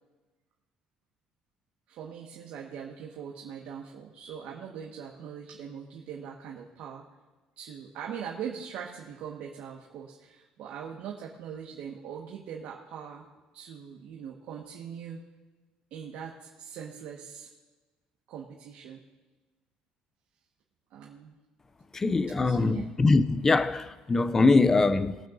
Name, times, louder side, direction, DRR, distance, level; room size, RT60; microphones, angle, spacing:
voice 1, 1.9-7.0 7.6-13.3 13.5-15.2 15.9-17.5 18.3-19.0 20.9-21.3 22.4-22.9, right 8 dB, 70° right, 1.5 m, -41 dB
voice 2, 21.9-25.2, left 3 dB, 15° left, 0.4 m, -23 dB
21.5 x 9.1 x 2.6 m
cardioid pair, 155°, 2 cm